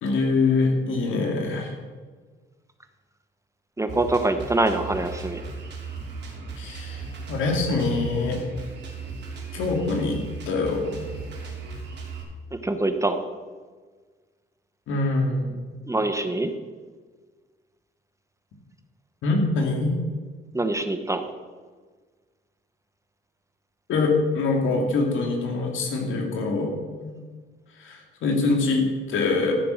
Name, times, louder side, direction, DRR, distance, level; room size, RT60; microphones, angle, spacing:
voice 1, 0.0-1.7 6.6-8.4 9.5-11.1 14.9-15.5 19.2-20.0 23.9-26.7 27.0-27.1 27.8-29.5, left 3 dB, 80° left, 1 dB, 2.6 m, -24 dB
voice 2, 3.8-5.4 12.5-13.2 15.9-16.5 20.5-21.3, right 2 dB, 15° right, 8 dB, 1.0 m, -24 dB
Drum kit, 3.9-12.2, right 4 dB, 60° right, 3.2 m, -36 dB
13.5 x 6.9 x 6.5 m, 1.5 s
cardioid pair, 90°, 20 cm